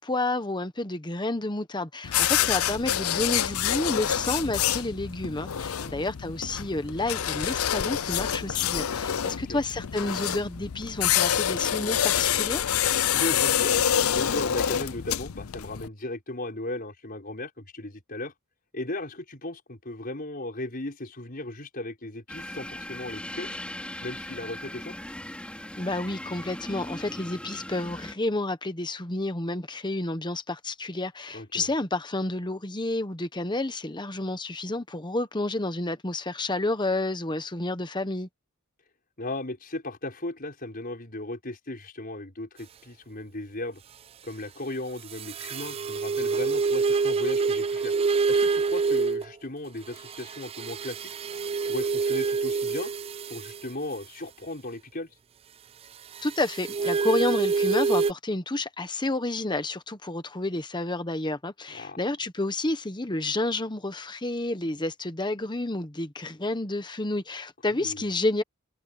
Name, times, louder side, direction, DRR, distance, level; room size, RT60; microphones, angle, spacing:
voice 1, 0.0-12.6 25.8-38.3 56.2-68.4, left 2 dB, 20° left, 1.1 m, -30 dB
sound 1, 2.0-15.9, left 10 dB, 80° left, 0.6 m, -27 dB
voice 2, 5.5-6.0 9.5-9.6 13.1-18.3 18.7-23.6 24.0-24.9 31.3-31.7 39.2-43.8 44.2-47.9 48.3-51.1 51.6-52.9 53.3-55.2 61.7-62.0 67.7-68.0, left 2 dB, 45° left, 5.7 m, -36 dB
sound 2, 22.3-28.1, left 1 dB, 5° left, 5.5 m, -39 dB
sound 3, 45.1-49.3 50.0-53.7 56.2-58.1, right 4 dB, 25° right, 0.3 m, -26 dB
head